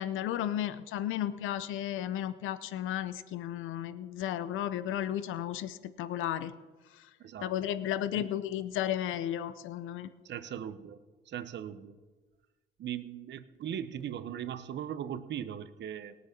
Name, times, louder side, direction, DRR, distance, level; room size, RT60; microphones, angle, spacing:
voice 1, 0.0-6.5 7.0-7.1 7.4-10.1, left 11 dB, 90° left, 14 dB, 0.7 m, -34 dB
voice 2, 7.2-7.5 8.1-8.3 10.2-11.0 11.3-12.0 12.8-16.1, right 9 dB, 65° right, 12 dB, 0.9 m, -39 dB
18.5 x 8.3 x 6.0 m, 1.3 s
cardioid pair, 90°, 20 cm